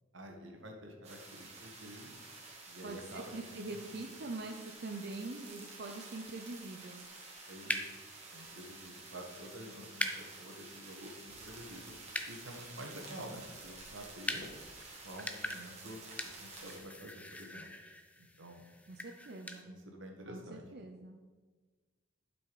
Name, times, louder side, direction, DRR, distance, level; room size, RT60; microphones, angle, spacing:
voice 1, 0.1-2.1 2.7-3.3 3.6-3.9 7.5-8.0 8.3-11.9 12.2-14.4 15.0-17.7 18.2-18.6 19.6-20.6, equal, 70° right, 2 dB, 1.6 m, -49 dB
sound 1, 1.0-16.8, right 3 dB, 35° right, 2.2 m, -51 dB
voice 2, 2.8-7.0 18.9-19.7 20.3-21.2, right 2 dB, 55° right, 4 dB, 0.7 m, -44 dB
sound 2, 7.0-19.6, left 1 dB, 5° left, 0.6 m, -44 dB
sound 3, 11.2-16.9, equal, 75° left, 1.8 m, -61 dB
11.0 x 6.2 x 4.8 m, 1.3 s
head